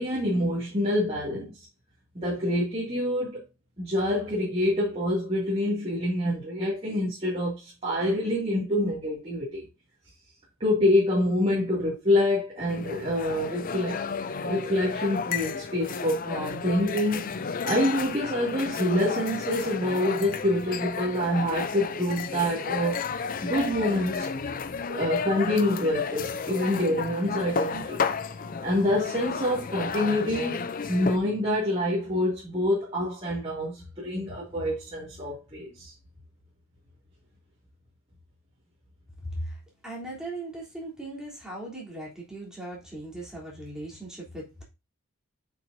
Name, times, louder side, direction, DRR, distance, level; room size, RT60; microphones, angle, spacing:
voice 1, 0.0-1.5 2.1-3.4 3.8-9.6 10.6-14.0 14.4-17.3 17.6-23.0 23.4-24.3 24.9-28.0 28.6-35.9, left 1 dB, 30° right, 2.3 m, -26 dB
sound 1, 12.7-31.2, left 5 dB, 40° left, 0.5 m, -32 dB
voice 2, 39.8-44.6, right 1 dB, 5° right, 3.3 m, -38 dB
7.7 x 6.1 x 2.7 m
head